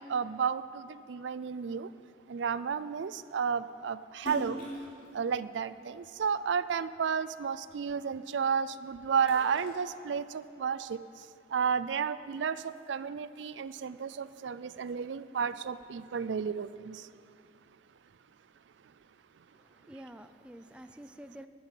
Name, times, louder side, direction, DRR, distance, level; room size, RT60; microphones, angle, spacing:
voice 1, 0.0-1.9 2.3-4.6 5.1-11.0 11.5-17.1, right 6 dB, 75° right, 15 dB, 0.4 m, -32 dB
Splash splatter, 4.2-6.7 7.2-8.6 9.0-10.7, right 1 dB, 45° left, 3.0 m, -43 dB
voice 2, 19.5-21.5, right 1 dB, 5° right, 9 dB, 0.4 m, -49 dB
11.5 x 9.5 x 9.0 m, 2.5 s
head